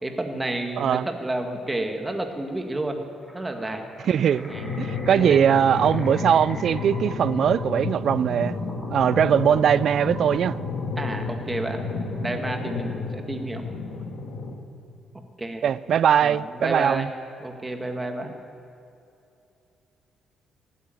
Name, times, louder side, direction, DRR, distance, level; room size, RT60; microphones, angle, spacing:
voice 1, 0.0-3.0 3.3-3.8 4.5-5.5 11.0-11.9 12.2-13.7 15.4-15.6 16.2-17.1 17.4-18.3, right 2 dB, 15° right, 1.8 m, -30 dB
voice 2, 0.8-1.1 4.0-8.6 8.9-10.6 15.6-17.1, right 8 dB, 65° right, 0.3 m, -21 dB
sound 1, 3.2-11.7, equal, ahead, 4.4 m, -44 dB
sound 2, 4.5-14.5, left 3 dB, 75° left, 1.9 m, -31 dB
16.0 x 9.5 x 9.1 m
cardioid pair, 90°, 0 cm